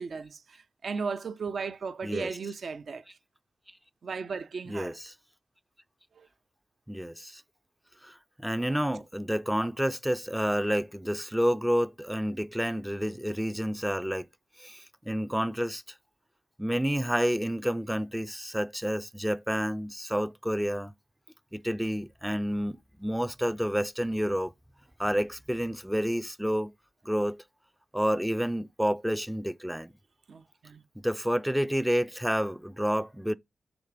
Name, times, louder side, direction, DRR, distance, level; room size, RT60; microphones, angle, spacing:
voice 1, 0.0-3.0 4.0-4.9 6.2-6.3 30.3-30.8, right 5 dB, 65° right, 0.7 m, -36 dB
voice 2, 2.0-2.4 4.6-5.1 6.9-7.4 8.0-14.3 14.6-15.8 16.6-20.9 21.5-24.5 25.0-26.7 27.0-27.4 27.9-29.9 31.0-33.3, equal, 5° right, 0.4 m, -29 dB
7.1 x 3.6 x 5.1 m
wide cardioid pair, 90°, 0 cm